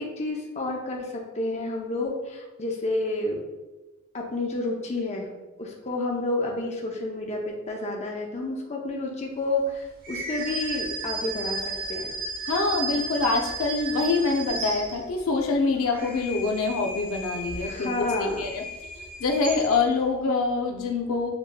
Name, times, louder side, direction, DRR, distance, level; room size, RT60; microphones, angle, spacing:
voice 1, 0.0-3.4 4.1-5.3 5.6-12.1 17.5-18.4, left 2 dB, 35° left, 0 dB, 0.6 m, -30 dB
sound 1, 10.0-15.3 15.8-20.0, right 2 dB, 45° right, 0.8 m, -34 dB
voice 2, 12.5-18.6 19.0-21.3, left 3 dB, 80° left, 2 dB, 0.5 m, -25 dB
6.7 x 2.8 x 2.2 m, 1.1 s
head